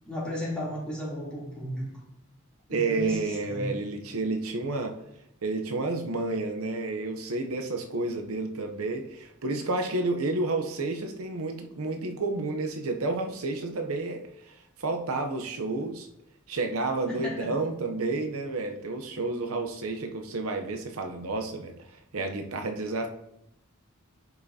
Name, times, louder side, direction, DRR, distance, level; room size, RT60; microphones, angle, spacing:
voice 1, 0.0-2.0 2.7-3.7 17.1-17.5, left 1 dB, 5° left, -7 dB, 3.1 m, -34 dB
voice 2, 2.7-5.0 5.4-16.1 16.5-23.1, right 3 dB, 90° right, 4 dB, 0.8 m, -30 dB
10.5 x 5.6 x 2.8 m, 0.81 s
head